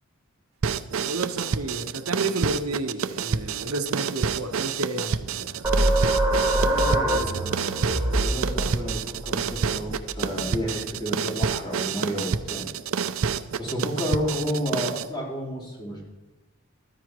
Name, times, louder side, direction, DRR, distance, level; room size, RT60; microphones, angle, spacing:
sound 1, 0.6-15.1, right 6 dB, 65° right, 0.5 m, -29 dB
voice 1, 1.0-5.7 7.1-7.4 7.8-8.2, right 2 dB, 85° right, 6 dB, 1.1 m, -31 dB
sound 2, 5.6-10.9, right 1 dB, 10° right, 1.7 m, -25 dB
voice 2, 6.5-7.9 8.2-12.7 13.6-16.0, equal, 20° left, -4 dB, 3.9 m, -31 dB
14.5 x 13.0 x 3.1 m, 1.2 s
head